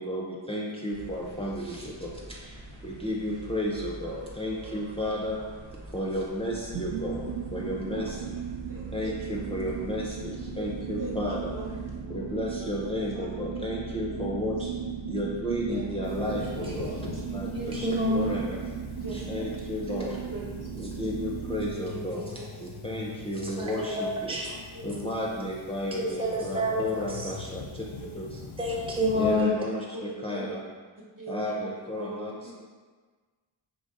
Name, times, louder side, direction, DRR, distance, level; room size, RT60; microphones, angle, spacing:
voice 1, 0.0-5.5 5.9-8.4 8.9-11.5 12.1-14.7 15.1-17.0 17.3-18.6 19.1-20.2 20.8-22.3 22.6-24.4 24.8-27.8 28.1-28.4 28.7-28.8 29.1-30.6 31.3-32.3, left 1 dB, 15° left, -4 dB, 0.6 m, -33 dB
sound 1, 0.9-12.0, right 1 dB, 80° right, 1.3 m, -46 dB
sound 2, 6.7-21.7, right 7 dB, 60° right, 0.5 m, -36 dB
voice 2, 11.5-12.4 12.8-13.7 14.1-14.5 15.7-16.2 16.6-18.3 18.9-19.5 19.8-20.7 21.7-22.4 23.8-24.3 24.7-25.0 25.9-27.1 28.0-28.1 29.9-30.5 31.2-31.7 32.0-32.5, right 1 dB, 45° right, -4 dB, 1.1 m, -42 dB
sound 3, 16.0-29.4, left 4 dB, 60° left, 0.5 m, -43 dB
voice 3, 17.5-18.3 23.6-24.5 26.2-26.3 26.5-27.3 28.6-29.6, left 1 dB, 10° right, -4 dB, 0.8 m, -28 dB
4.0 x 3.0 x 3.8 m, 1.4 s
wide cardioid pair, 60°, 45 cm